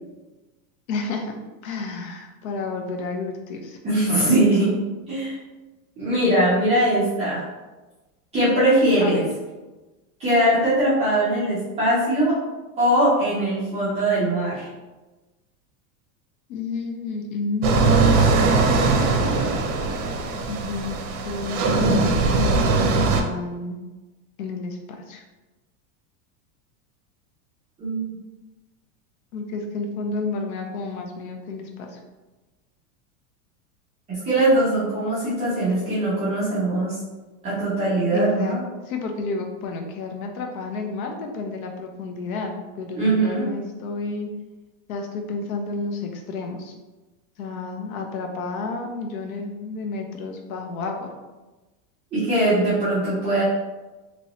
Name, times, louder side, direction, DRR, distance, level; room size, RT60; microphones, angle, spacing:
voice 1, 0.9-1.4 1.6-3.8 9.0-9.3 16.5-18.4 20.5-21.0 21.2-23.8 24.4-25.2 29.3-32.0 38.1-38.6 38.8-44.3 44.9-46.7 47.4-51.1, left 3 dB, 75° left, 3 dB, 0.7 m, -31 dB
voice 2, 3.8-4.7 5.1-5.4 6.0-7.4 8.3-9.2 10.2-12.3 12.8-14.7 27.8-28.2 34.1-37.0 37.4-38.6 42.9-43.5 52.1-53.4, right 1 dB, 15° right, -12 dB, 0.7 m, -21 dB
sound 1, 17.6-23.2, right 3 dB, 75° right, 0.7 m, -20 dB
3.0 x 2.6 x 2.9 m, 1.2 s
supercardioid pair, 165°, 43 cm